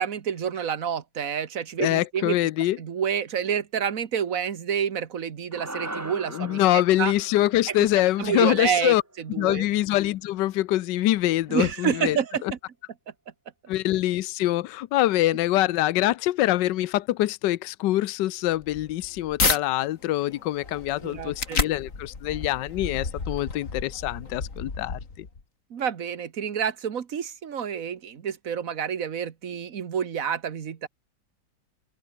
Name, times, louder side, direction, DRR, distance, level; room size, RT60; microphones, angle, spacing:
voice 1, 0.0-2.4 2.8-7.1 8.2-9.6 11.5-12.4 21.0-21.6 25.7-30.9, right 8 dB, 50° right, 1.6 m, -28 dB
voice 2, 1.8-2.8 6.3-9.0 9.4-12.5 13.7-25.3, left 15 dB, 80° left, 1.3 m, -24 dB
sound 1, 5.5-10.0, right 1 dB, 10° right, 1.5 m, -41 dB
sound 2, 18.6-19.6 20.1-25.4, left 4 dB, 45° left, 3.1 m, -31 dB
open air
omnidirectional pair, 1.9 m